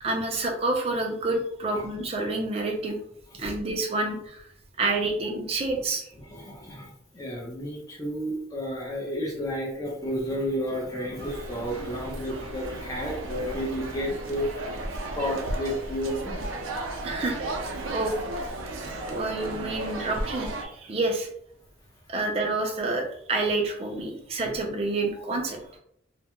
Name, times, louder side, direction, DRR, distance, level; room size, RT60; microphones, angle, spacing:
voice 1, 0.0-3.0 3.3-4.5 4.8-6.1 17.0-17.4 17.9-18.2 19.1-21.3 22.1-25.6, right 2 dB, 30° right, 2 dB, 0.4 m, -28 dB
voice 2, 6.2-16.5 16.9-17.1 17.8-18.0 18.6-19.0 24.4-24.6, equal, 20° left, -3 dB, 0.5 m, -32 dB
sound 1, 11.2-20.7, right 2 dB, 85° right, 0.5 m, -34 dB
2.3 x 2.0 x 2.9 m, 0.69 s
head